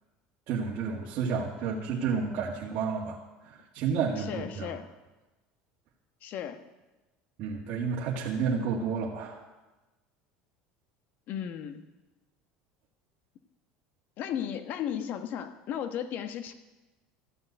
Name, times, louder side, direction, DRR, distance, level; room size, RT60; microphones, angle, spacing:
voice 1, 0.5-3.2 3.5-4.7 7.4-9.4, right 5 dB, 55° right, -4 dB, 1.9 m, -31 dB
voice 2, 4.2-4.9 6.2-6.6 11.3-11.8 14.2-16.5, left 9 dB, 55° left, 9 dB, 1.2 m, -35 dB
14.0 x 7.7 x 8.2 m, 1.1 s
supercardioid pair, 110°, 4 cm